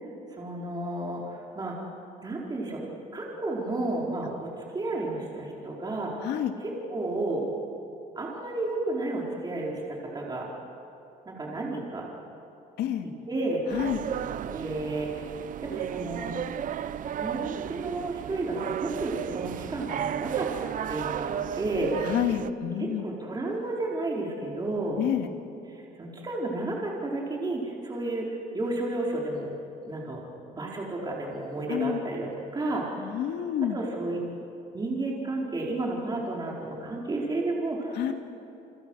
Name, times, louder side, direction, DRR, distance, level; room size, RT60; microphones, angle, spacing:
voice 1, 0.3-1.8 2.2-2.8 3.1-6.2 6.6-7.5 8.2-10.5 11.3-12.1 13.3-13.6 14.5-15.1 15.6-16.3 17.1-21.3 21.6-21.9 22.8-25.0 25.7-29.5 29.8-30.2 30.6-32.3 32.5-33.3 33.6-34.2 34.7-38.1, right 2 dB, 25° right, -3 dB, 4.7 m, -32 dB
sound 1, 13.7-22.5, right 10 dB, 55° right, 0.7 m, -34 dB
voice 2, 22.1-23.1 25.0-25.3 31.7-32.0 33.0-33.8 38.0-38.1, left 10 dB, 75° left, 5 dB, 2.4 m, -28 dB
29.5 x 25.5 x 6.5 m, 2.8 s
cardioid pair, 110°, 17 cm